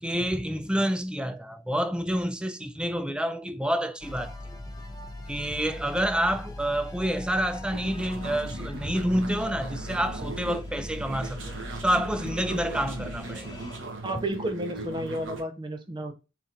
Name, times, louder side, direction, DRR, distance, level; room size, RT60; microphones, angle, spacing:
voice 1, 0.0-4.6 5.3-11.5 11.8-13.6, equal, 5° right, 0.3 m, -28 dB
sound 1, 4.0-13.8, left 2 dB, 20° left, 0.7 m, -40 dB
sound 2, 7.7-15.4, right 3 dB, 90° right, 1.1 m, -39 dB
voice 2, 14.0-16.1, right 1 dB, 25° right, 0.8 m, -32 dB
4.2 x 2.9 x 3.7 m
head